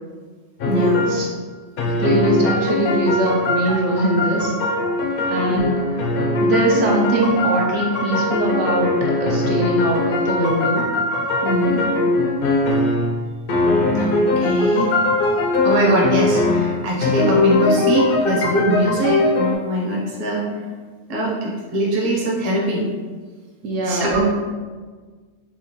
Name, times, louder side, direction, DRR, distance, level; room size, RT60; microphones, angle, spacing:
sound 1, 0.6-1.2 1.8-13.2 13.5-19.5, left 2 dB, 60° left, 0.6 m, -20 dB
voice 1, 0.6-1.1 5.5-5.6 11.4-11.8 13.9-14.9 15.6-20.6 21.1-22.8 23.8-24.2, right 1 dB, 35° right, -3 dB, 0.7 m, -22 dB
voice 2, 1.9-4.7 5.3-5.8 6.4-10.8 23.6-24.2, right 1 dB, 70° right, -1 dB, 0.9 m, -21 dB
5.8 x 2.3 x 2.8 m, 1.5 s
omnidirectional pair, 1.3 m